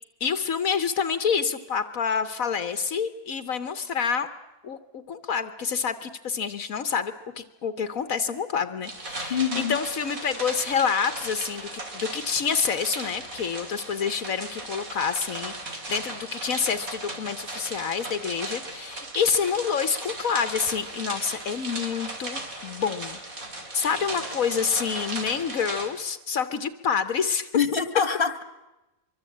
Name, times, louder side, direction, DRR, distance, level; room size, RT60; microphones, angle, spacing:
voice 1, 0.2-4.3 4.6-23.2 23.7-27.5, left 6 dB, 75° left, 11 dB, 1.6 m, -28 dB
sound 1, 8.8-25.9, right 2 dB, 85° right, 4.1 m, -36 dB
voice 2, 9.3-9.8 27.5-28.4, left 7 dB, 40° left, 11 dB, 2.0 m, -24 dB
24.0 x 24.0 x 8.6 m, 1.0 s
omnidirectional pair, 1.4 m